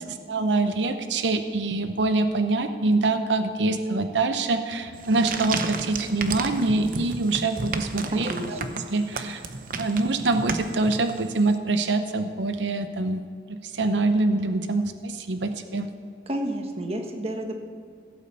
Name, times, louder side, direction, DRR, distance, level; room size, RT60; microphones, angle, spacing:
voice 1, 0.1-8.6 8.9-9.4 9.8-15.9, right 2 dB, 90° right, 8 dB, 0.7 m, -25 dB
sound 1, 4.9-11.5, right 4 dB, 50° right, 0.9 m, -33 dB
voice 2, 8.1-8.6 16.3-17.6, right 1 dB, 35° right, 3 dB, 1.3 m, -30 dB
16.0 x 8.6 x 6.8 m, 2.2 s
head